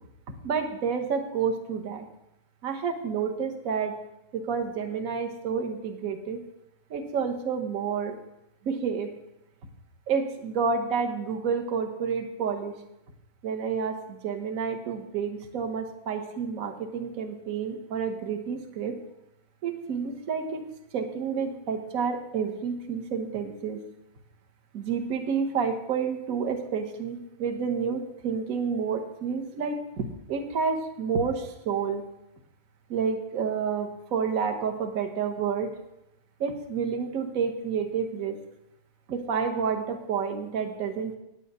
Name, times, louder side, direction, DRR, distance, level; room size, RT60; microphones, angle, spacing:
voice 1, 0.4-2.0 2.6-4.0 4.3-6.4 6.9-8.1 8.6-9.1 10.1-12.8 13.4-19.0 19.6-20.6 20.9-23.8 24.7-32.0 32.9-35.7 36.4-38.4 39.1-41.2, right 6 dB, 50° right, 4 dB, 1.3 m, -29 dB
10.0 x 5.5 x 8.0 m, 0.87 s
omnidirectional pair, 2.2 m